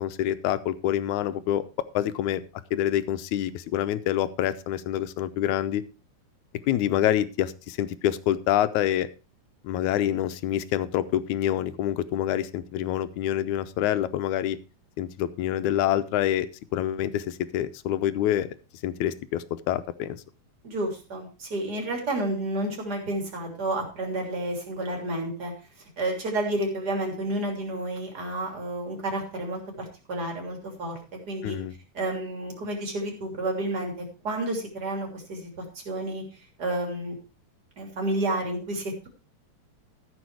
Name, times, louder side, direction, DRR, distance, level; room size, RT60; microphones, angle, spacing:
voice 1, 0.0-1.6 1.9-2.4 2.7-5.8 6.7-9.1 9.6-14.6 15.0-18.5 18.8-20.2 31.4-31.7, left 12 dB, 80° left, 13 dB, 2.1 m, -26 dB
voice 2, 20.6-25.5 26.0-31.6 31.9-36.2 36.6-37.2 37.8-39.1, right 1 dB, 30° right, 1 dB, 3.5 m, -30 dB
14.0 x 7.1 x 4.7 m, 0.32 s
omnidirectional pair, 3.5 m